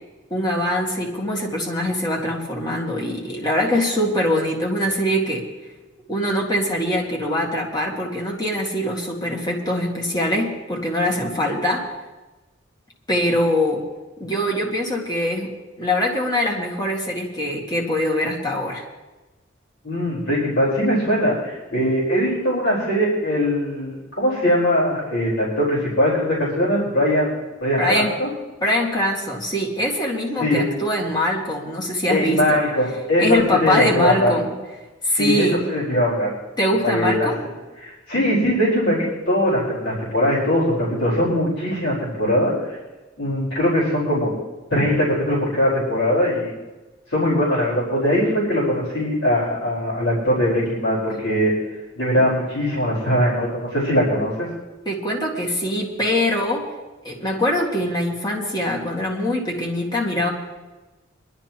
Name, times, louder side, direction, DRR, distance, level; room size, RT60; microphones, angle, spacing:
voice 1, 0.3-5.5 6.1-11.9 13.1-13.9 14.2-15.5 15.8-18.9 27.8-28.1 28.6-32.6 33.2-34.5 35.0-35.6 36.6-37.4 54.9-56.7 57.0-60.3, left 1 dB, 20° left, -2 dB, 1.9 m, -23 dB
voice 2, 19.8-28.3 30.4-30.6 32.1-34.4 35.1-36.3 36.8-37.3 37.8-42.8 43.2-44.3 44.7-46.5 47.1-51.5 51.9-54.5, equal, 75° left, -6 dB, 4.6 m, -21 dB
23.5 x 12.0 x 3.0 m, 1.1 s
head